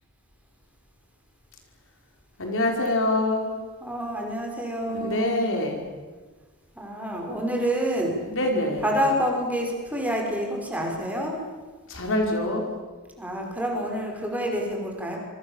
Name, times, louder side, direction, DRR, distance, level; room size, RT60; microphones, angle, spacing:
voice 1, 2.4-3.5 4.9-5.9 8.3-8.8 11.9-12.7, left 1 dB, 60° left, 2 dB, 5.3 m, -25 dB
voice 2, 3.8-5.3 6.8-8.2 8.8-11.4 13.2-15.2, equal, 5° right, 0 dB, 5.9 m, -27 dB
27.0 x 25.5 x 7.4 m, 1.4 s
head